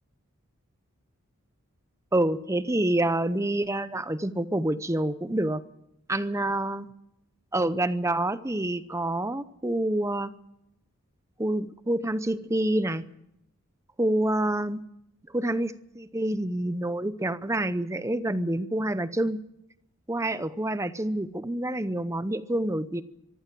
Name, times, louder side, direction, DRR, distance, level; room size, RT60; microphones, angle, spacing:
voice 1, 2.1-5.6 6.1-6.9 7.5-10.3 11.4-13.0 14.0-14.8 15.3-19.4 20.1-23.0, right 1 dB, 15° right, 14 dB, 0.7 m, -27 dB
24.0 x 15.0 x 7.7 m, 0.83 s
head